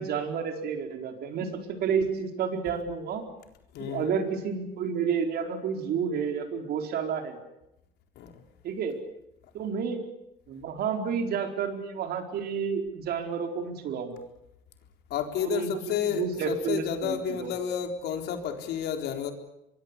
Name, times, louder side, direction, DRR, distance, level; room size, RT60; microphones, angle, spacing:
voice 1, 0.0-1.5 1.8-3.2 3.8-7.4 8.6-9.0 9.5-10.0 10.5-14.2 15.4-17.5, right 6 dB, 70° right, 5 dB, 4.5 m, -30 dB
voice 2, 3.7-4.2 8.2-8.4 15.1-19.3, left 8 dB, 75° left, 5 dB, 4.1 m, -31 dB
24.5 x 22.5 x 8.3 m, 0.86 s
cardioid pair, 110°, 17 cm